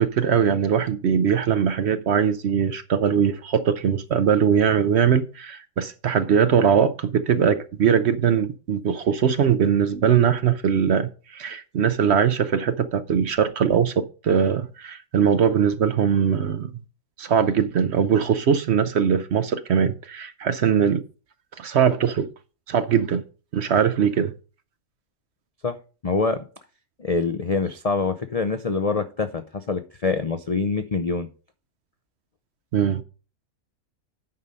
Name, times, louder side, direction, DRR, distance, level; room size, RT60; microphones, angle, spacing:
voice 1, 0.0-16.7 17.2-21.0 21.6-22.3 22.7-23.2 23.5-24.3 32.7-33.0, right 7 dB, 60° right, 0.8 m, -21 dB
voice 2, 26.0-26.4 27.0-31.3, left 4 dB, 55° left, 0.4 m, -25 dB
9.3 x 5.5 x 5.2 m
omnidirectional pair, 1.5 m